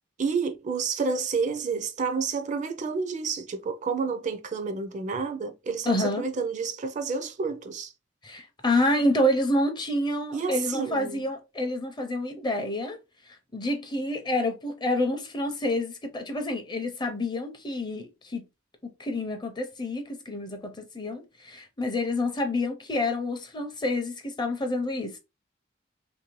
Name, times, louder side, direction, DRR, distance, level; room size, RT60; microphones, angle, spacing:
voice 1, 0.2-7.9 10.3-11.3, right 5 dB, 40° right, 0.4 m, -30 dB
voice 2, 5.9-6.2 8.2-13.0 13.3-18.4 18.8-25.2, left 1 dB, 25° left, 0.5 m, -28 dB
3.1 x 2.6 x 3.0 m
head